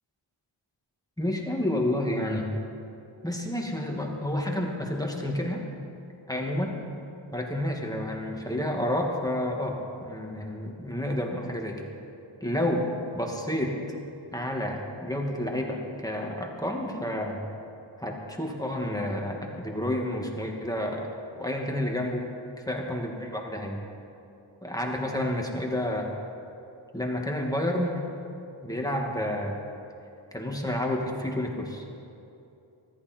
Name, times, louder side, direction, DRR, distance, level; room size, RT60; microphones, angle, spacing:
voice 1, 1.2-2.5 3.2-5.6 6.3-6.8 7.3-11.9 12.4-12.9 13.1-13.8 14.3-17.4 18.0-21.1 21.4-22.3 22.7-23.9 24.6-26.1 26.9-28.0 28.6-29.6 30.3-31.8, left 1 dB, 5° left, 0 dB, 2.4 m, -30 dB
20.5 x 14.5 x 4.6 m, 2.7 s
wide cardioid pair, 45°, 49 cm